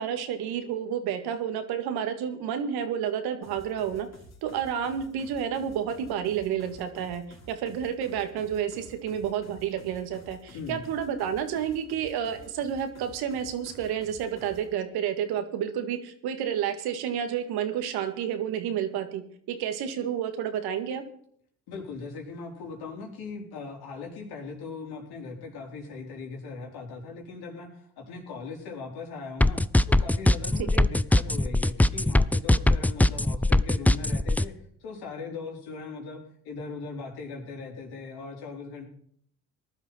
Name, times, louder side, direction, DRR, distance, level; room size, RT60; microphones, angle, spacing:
voice 1, 0.0-4.1 4.4-21.0 30.7-30.9, right 8 dB, 65° right, 7 dB, 2.1 m, -30 dB
sound 1, 3.4-14.7, left 1 dB, 40° left, 4.3 m, -51 dB
voice 2, 21.7-38.9, left 4 dB, 65° left, 0 dB, 4.6 m, -39 dB
sound 2, 29.4-34.4, left 1 dB, 5° left, 0.5 m, -20 dB
19.0 x 12.0 x 4.5 m, 0.64 s
hypercardioid pair, 55°, 41 cm